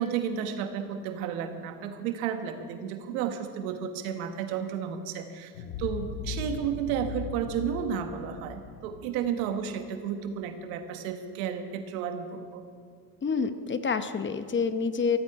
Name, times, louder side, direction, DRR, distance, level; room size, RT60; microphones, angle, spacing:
voice 1, 0.0-5.5 5.8-12.6, right 8 dB, 85° right, 7 dB, 1.4 m, -32 dB
sound 1, 5.5-10.3, left 4 dB, 80° left, 1.3 m, -39 dB
voice 2, 13.2-15.2, left 5 dB, 25° left, 10 dB, 0.9 m, -28 dB
15.0 x 14.5 x 4.8 m, 2.1 s
supercardioid pair, 90°, 41 cm